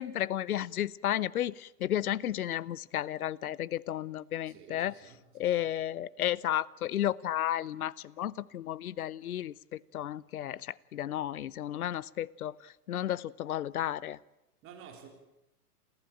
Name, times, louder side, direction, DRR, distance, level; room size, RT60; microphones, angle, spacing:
voice 1, 0.0-5.0 5.3-14.2, left 12 dB, 65° left, 0.8 m, -33 dB
voice 2, 4.5-5.2 14.6-15.1, right 7 dB, 25° right, 4.1 m, -51 dB
28.0 x 15.0 x 8.8 m
hypercardioid pair, 120°, 47 cm